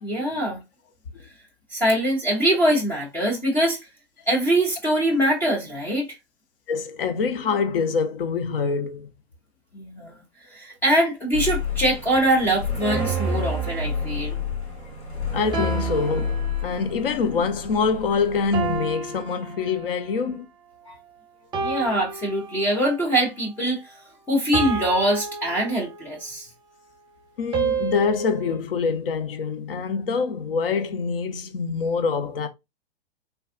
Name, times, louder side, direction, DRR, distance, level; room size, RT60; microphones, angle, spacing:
voice 1, 0.0-0.6 1.7-3.8 4.3-6.1 9.7-10.2 10.4-14.4 20.9-21.0 21.6-23.8 24.3-26.5, right 1 dB, 5° left, 0.3 m, -23 dB
voice 2, 6.7-9.1 15.3-20.4 27.4-32.5, left 5 dB, 60° left, 0.6 m, -25 dB
sound 1, 11.3-18.8, left 2 dB, 80° left, 1.6 m, -29 dB
sound 2, 12.8-14.5 15.5-17.0 18.5-20.2 21.5-23.0 24.5-26.3 27.5-28.6, right 5 dB, 15° right, 0.7 m, -31 dB
3.3 x 2.3 x 2.5 m
figure-of-eight pair, 110°, 32 cm